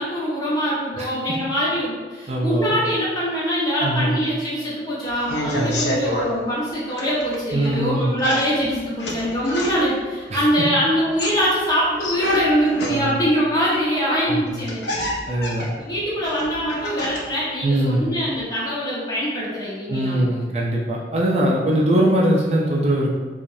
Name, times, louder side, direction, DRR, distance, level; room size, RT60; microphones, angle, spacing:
voice 1, 0.0-15.0 15.8-20.3, equal, 20° left, -7 dB, 1.0 m, -23 dB
voice 2, 2.3-2.8 3.8-4.2 5.5-5.9 7.5-8.1 10.3-10.5 12.8-13.2 14.3-14.6 15.3-15.7 17.6-18.0 19.9-23.1, right 1 dB, 35° right, -2 dB, 0.4 m, -21 dB
sound 1, 5.1-6.3 6.9-7.8 8.2-10.0 11.0-13.3 14.1-14.2 14.5-17.4 17.7-18.4, left 1 dB, 75° left, 0.7 m, -29 dB
4.9 x 2.5 x 2.7 m, 1.4 s
head